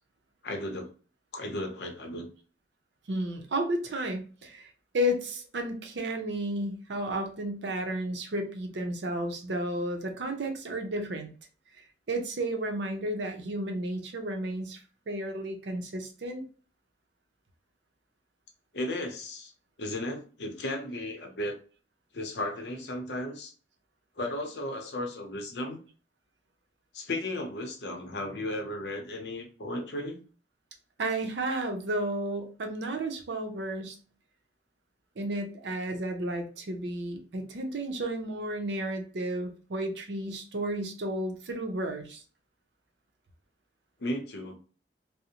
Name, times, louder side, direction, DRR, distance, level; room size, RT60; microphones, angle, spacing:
voice 1, 0.4-0.9 1.3-2.3 18.7-19.5 19.8-21.5 22.1-23.5 24.2-25.8 26.9-30.2 44.0-44.6, left 1 dB, 70° left, 3 dB, 0.7 m, -35 dB
voice 2, 3.1-11.3 12.1-14.8 15.1-16.4 31.0-34.0 35.2-42.2, right 1 dB, 80° right, 4 dB, 0.6 m, -32 dB
2.5 x 2.0 x 2.8 m, 0.38 s
head